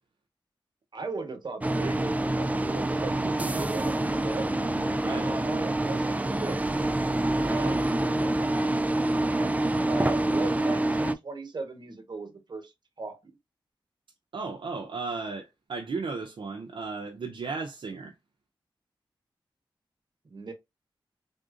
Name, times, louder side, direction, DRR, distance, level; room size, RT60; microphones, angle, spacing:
voice 1, 0.9-4.5 5.0-6.8 7.4-8.5 9.3-9.5 9.9-12.7 13.0-13.2 20.3-20.5, right 3 dB, 55° right, 1.2 m, -37 dB
sound 1, 1.6-11.1, right 1 dB, 15° right, 0.3 m, -26 dB
voice 2, 14.3-18.2, right 4 dB, 75° right, 0.6 m, -35 dB
3.5 x 2.6 x 2.4 m
cardioid pair, 60°, 9 cm